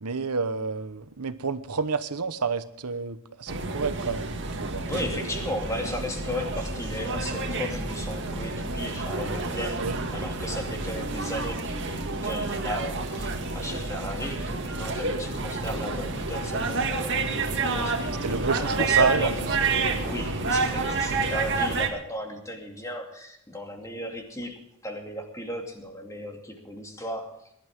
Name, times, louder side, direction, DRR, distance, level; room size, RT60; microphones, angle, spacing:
voice 1, 0.0-4.9 9.8-10.0 18.2-19.3 20.4-20.6, right 4 dB, 90° right, 12 dB, 1.1 m, -29 dB
sound 1, 3.5-21.9, right 3 dB, 55° right, 2.0 m, -29 dB
voice 2, 4.9-9.8 10.1-19.4 20.0-24.6 24.8-27.5, equal, 15° left, 3 dB, 2.5 m, -35 dB
21.0 x 12.0 x 3.7 m, 0.76 s
head